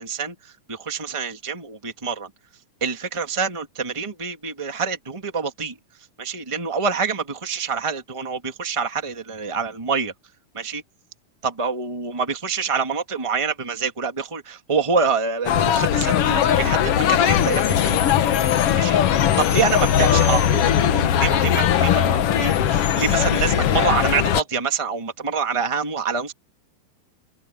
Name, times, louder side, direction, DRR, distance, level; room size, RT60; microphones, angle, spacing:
voice 1, 0.0-2.3 2.8-5.7 6.2-10.1 10.5-10.8 11.4-18.4 18.7-19.0 19.4-26.3, right 5 dB, 50° right, 0.3 m, -26 dB
sound 1, 15.5-24.4, left 9 dB, 70° left, 1.4 m, -19 dB
open air
omnidirectional pair, 4.1 m